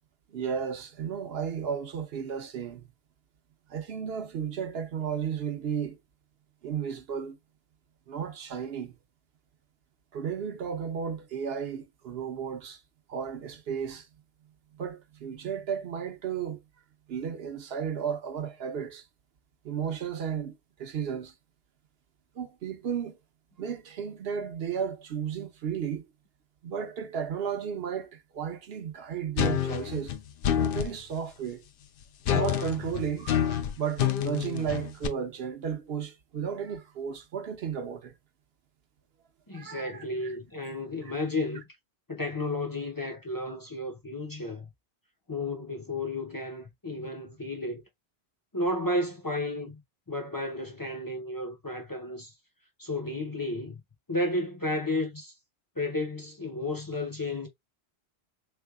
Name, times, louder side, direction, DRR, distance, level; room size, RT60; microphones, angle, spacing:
voice 1, 0.3-2.9 3.7-6.0 6.6-7.4 8.1-8.9 10.1-12.8 13.1-14.1 14.7-16.6 17.1-19.0 19.6-21.3 22.3-23.2 23.6-26.1 26.6-30.2 30.5-31.6 32.3-38.1 39.5-40.3, right 7 dB, 65° right, 1.0 m, -34 dB
sound 1, 29.4-30.9 32.2-35.1, left 9 dB, 65° left, 0.7 m, -27 dB
voice 2, 39.5-41.6 42.1-44.7 45.3-47.8 48.5-49.8 50.1-52.3 52.8-53.8 54.1-55.3 55.8-57.5, left 2 dB, 25° left, 0.6 m, -32 dB
3.6 x 3.3 x 2.3 m
omnidirectional pair, 1.1 m